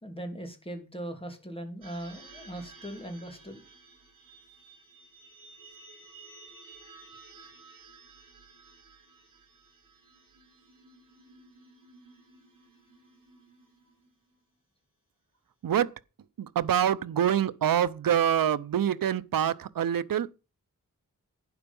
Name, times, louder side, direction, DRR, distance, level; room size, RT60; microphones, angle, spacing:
voice 1, 0.0-3.6, right 1 dB, 15° left, 2.8 m, -39 dB
sound 1, 1.8-14.3, right 3 dB, 65° right, 7.0 m, -54 dB
voice 2, 15.6-15.9 16.4-20.3, right 9 dB, 85° right, 0.7 m, -26 dB
11.5 x 9.7 x 5.4 m
wide cardioid pair, 130°, 33 cm